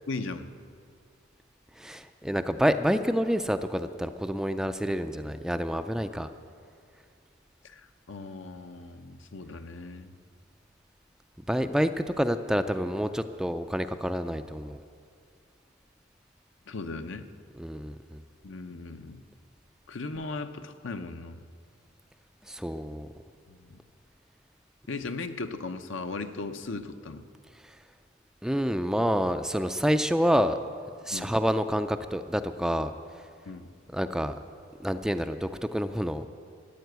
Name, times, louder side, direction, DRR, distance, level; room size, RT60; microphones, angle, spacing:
voice 1, 0.1-0.5 7.6-10.2 16.7-17.3 18.4-19.2 19.9-21.4 23.5-23.8 24.9-27.2 31.1-31.3 33.4-33.7, left 3 dB, 65° left, 9 dB, 0.7 m, -37 dB
voice 2, 1.8-6.3 11.5-14.8 17.6-18.2 22.5-23.1 27.6-27.8 28.4-30.6 31.1-32.9 33.9-34.3 34.8-36.3, equal, 5° right, 9 dB, 0.3 m, -28 dB
14.0 x 9.7 x 8.0 m, 2.2 s
head